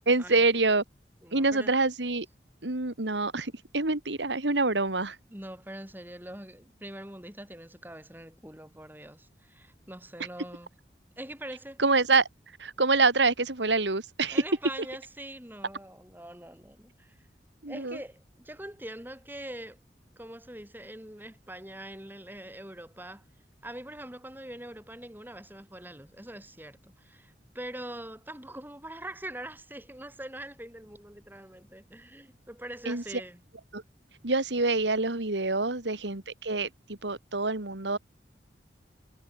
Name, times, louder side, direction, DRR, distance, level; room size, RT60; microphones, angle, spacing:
voice 1, 0.1-0.8 1.3-2.3 2.6-5.2 11.8-12.3 12.6-14.4 17.6-18.0 32.9-33.0 33.7-33.8 34.2-38.0, right 3 dB, 90° right, 2.5 m, -26 dB
voice 2, 1.2-1.8 5.3-10.7 11.2-11.8 14.3-17.2 17.7-19.8 20.2-23.2 23.6-33.4, right 1 dB, 10° right, 5.4 m, -43 dB
head